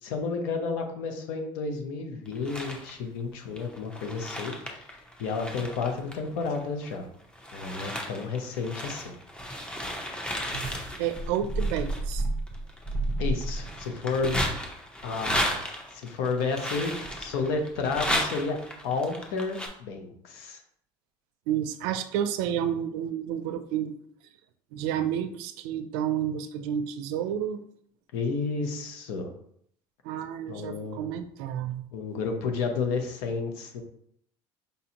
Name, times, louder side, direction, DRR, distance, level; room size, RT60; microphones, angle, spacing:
voice 1, 0.0-7.1 7.5-9.1 13.2-14.6 15.0-15.6 15.9-18.6 18.8-20.6 28.1-29.3 30.5-31.0 31.9-33.8, left 4 dB, 85° left, 4 dB, 0.8 m, -31 dB
sound 1, 2.2-2.9 3.6-7.0 7.3-19.7, equal, 10° left, 0.7 m, -33 dB
voice 2, 11.0-12.3 21.5-24.0 24.7-27.6 30.0-31.9, right 9 dB, 85° right, 10 dB, 0.4 m, -30 dB
5.3 x 2.6 x 2.8 m, 0.67 s
supercardioid pair, 105°, 12 cm